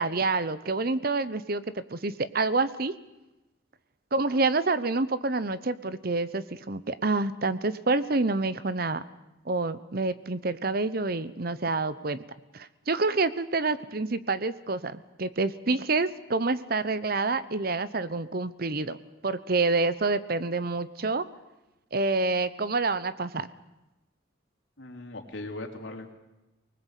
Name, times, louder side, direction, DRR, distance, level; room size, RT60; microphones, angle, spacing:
voice 1, 0.0-2.9 4.1-9.0 9.4-12.2 12.5-19.0 19.2-21.2 21.9-23.5, right 3 dB, 50° right, 14 dB, 1.0 m, -27 dB
voice 2, 24.8-26.1, left 2 dB, 75° left, 3 dB, 3.4 m, -39 dB
24.0 x 20.0 x 8.3 m, 1.0 s
head